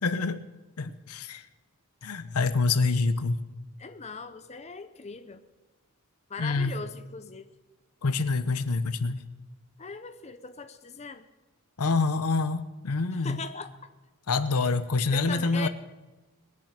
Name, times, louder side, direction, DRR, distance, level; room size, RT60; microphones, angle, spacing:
voice 1, 0.0-0.4 0.8-1.4 2.0-3.4 6.4-6.7 8.0-9.2 11.8-13.4 14.3-15.7, left 3 dB, 85° left, 12 dB, 0.8 m, -26 dB
voice 2, 3.8-5.4 6.3-7.5 9.8-11.3 13.1-13.7 15.1-15.7, left 4 dB, 30° left, 9 dB, 0.7 m, -39 dB
21.0 x 7.1 x 6.4 m, 1.1 s
head